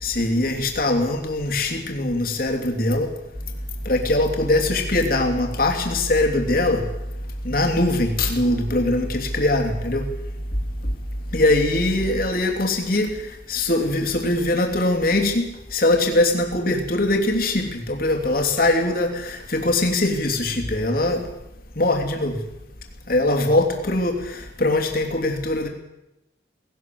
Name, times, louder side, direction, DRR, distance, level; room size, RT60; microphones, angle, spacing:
voice 1, 0.0-3.1 3.8-6.8 7.4-10.1 11.3-13.2 13.5-15.4 15.7-21.3 21.8-22.4 23.1-25.7, left 2 dB, 50° left, 2 dB, 3.1 m, -22 dB
sound 1, 3.3-12.3, right 1 dB, 25° left, 1.5 m, -32 dB
19.0 x 17.5 x 7.8 m, 0.91 s
head